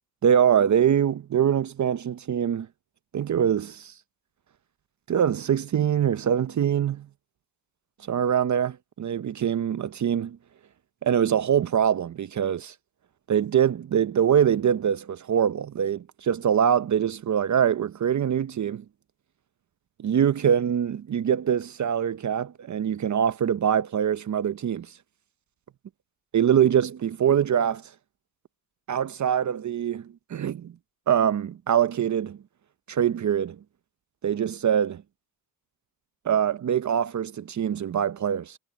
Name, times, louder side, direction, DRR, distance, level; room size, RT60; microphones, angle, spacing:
voice 1, 0.2-2.7 3.1-3.9 5.1-7.1 8.1-10.4 11.0-12.7 13.3-18.8 20.0-24.9 26.3-27.8 28.9-30.7 31.1-32.4 32.9-33.6 34.2-35.0 36.3-38.6, right 8 dB, 50° right, 0.7 m, -24 dB
cardioid pair, 90°, 38 cm